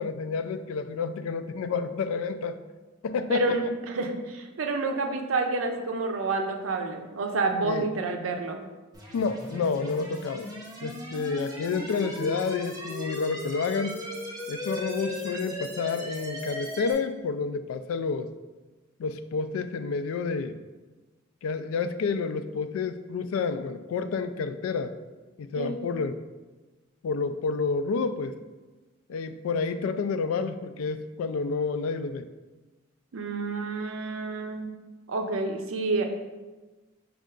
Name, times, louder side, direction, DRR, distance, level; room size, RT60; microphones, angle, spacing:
voice 1, 0.0-2.6 3.0-3.6 7.6-7.9 9.1-10.5 10.8-14.0 14.5-18.3 19.0-20.6 21.4-24.9 25.4-26.2 27.0-28.3 29.1-32.3, left 4 dB, 80° left, 11 dB, 0.3 m, -29 dB
voice 2, 3.3-8.6 25.6-25.7 33.1-34.7 35.1-36.0, right 3 dB, 75° right, 4 dB, 0.5 m, -29 dB
sound 1, 8.9-16.9, equal, 20° right, 0.9 m, -37 dB
5.2 x 2.4 x 3.7 m, 1.2 s
head